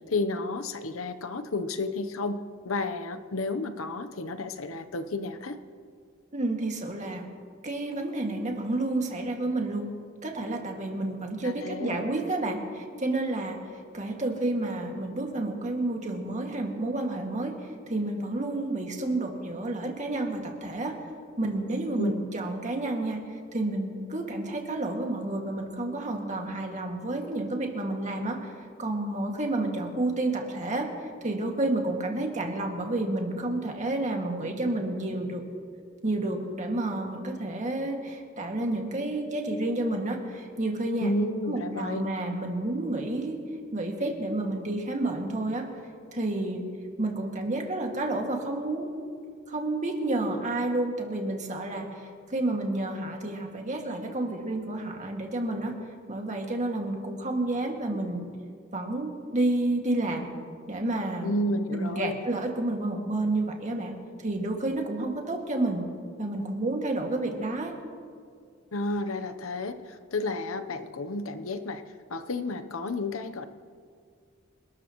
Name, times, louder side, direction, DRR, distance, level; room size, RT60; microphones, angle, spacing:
voice 1, 0.1-5.6 11.4-12.0 22.0-22.1 41.0-42.0 61.2-62.2 68.7-71.8 72.1-73.5, left 2 dB, 85° left, 10 dB, 0.9 m, -31 dB
voice 2, 6.3-7.3 7.6-9.9 10.2-13.6 13.9-17.5 17.9-20.9 21.4-23.2 23.5-28.5 28.8-30.9 31.2-35.4 36.0-41.1 41.5-43.4 43.7-45.7 46.1-46.7 47.0-48.9 49.5-55.7 56.1-58.3 58.7-60.3 60.7-61.3 61.7-63.9 64.2-65.8 66.2-67.8, right 2 dB, 35° right, 1 dB, 2.1 m, -30 dB
27.5 x 13.0 x 3.1 m, 2.2 s
head